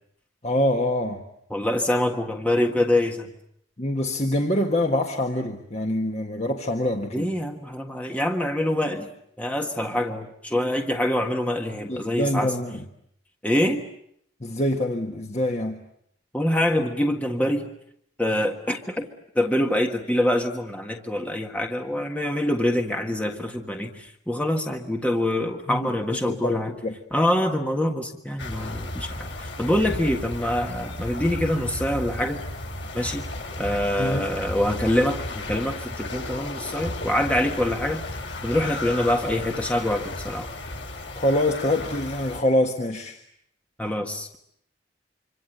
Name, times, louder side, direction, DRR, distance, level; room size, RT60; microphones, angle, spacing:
voice 1, 0.4-1.2 3.8-7.3 11.9-12.8 14.4-15.8 25.7-25.9 26.2-26.9 34.0-34.3 41.1-43.2, left 1 dB, 35° left, 3 dB, 1.6 m, -25 dB
voice 2, 1.5-3.3 7.1-9.1 9.4-12.5 13.4-13.8 16.3-17.7 18.2-19.1 19.3-26.7 27.1-32.4 32.9-33.3 33.6-38.0 38.4-40.5 43.8-44.4, left 1 dB, 10° left, 3 dB, 1.6 m, -25 dB
sound 1, 28.4-42.4, left 2 dB, 80° left, 7.2 m, -34 dB
26.0 x 26.0 x 8.0 m, 0.72 s
head